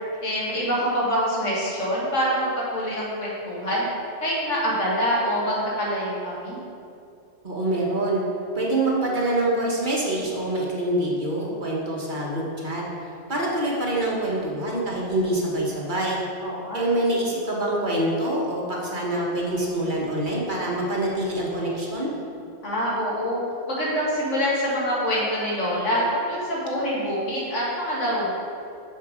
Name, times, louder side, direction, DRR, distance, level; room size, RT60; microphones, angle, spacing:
voice 1, 0.2-3.8 4.2-6.6 16.4-17.0 22.6-23.4 23.7-28.3, equal, 80° left, -6 dB, 2.4 m, -25 dB
voice 2, 7.4-8.2 8.5-12.8 13.3-16.2 16.7-22.1, right 1 dB, 40° right, -4 dB, 1.5 m, -25 dB
7.2 x 6.6 x 5.0 m, 2.5 s
omnidirectional pair, 1.2 m